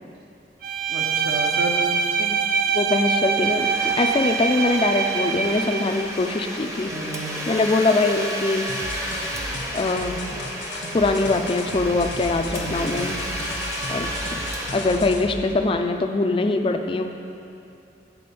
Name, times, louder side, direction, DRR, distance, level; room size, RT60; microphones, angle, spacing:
Bowed string instrument, 0.6-6.0, right 6 dB, 50° right, 0.5 m, -24 dB
voice 1, 0.9-1.8 6.9-7.5 12.5-13.3, right 1 dB, 70° right, 0 dB, 1.0 m, -32 dB
voice 2, 2.7-6.9 7.5-8.7 9.7-10.2 10.9-13.2 13.9-14.1 14.7-17.1, left 3 dB, 30° left, 5 dB, 0.4 m, -22 dB
Domestic sounds home sounds, 3.3-15.9, equal, 15° right, 0.7 m, -32 dB
sound 1, 8.7-15.4, left 2 dB, 80° left, 0.9 m, -35 dB
8.4 x 4.2 x 6.9 m, 2.7 s
head